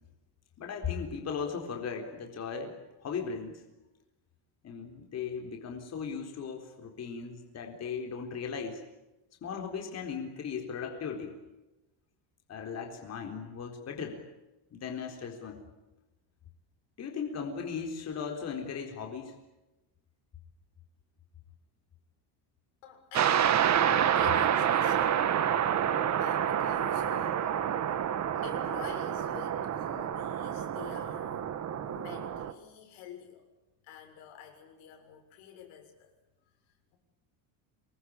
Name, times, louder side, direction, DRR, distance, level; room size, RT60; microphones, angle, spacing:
voice 1, 0.6-3.6 4.6-8.8 9.4-11.4 12.5-14.2 14.7-15.6 17.0-19.4, left 6 dB, 35° left, 3 dB, 4.1 m, -37 dB
voice 2, 22.8-23.6 24.1-25.2 26.2-27.8 28.3-31.5 31.9-33.4 33.8-36.1, left 9 dB, 85° left, 4 dB, 7.0 m, -48 dB
sound 1, 23.1-32.5, right 9 dB, 35° right, 1.7 m, -28 dB
27.0 x 21.5 x 8.7 m, 1.0 s
cardioid pair, 165°, 46 cm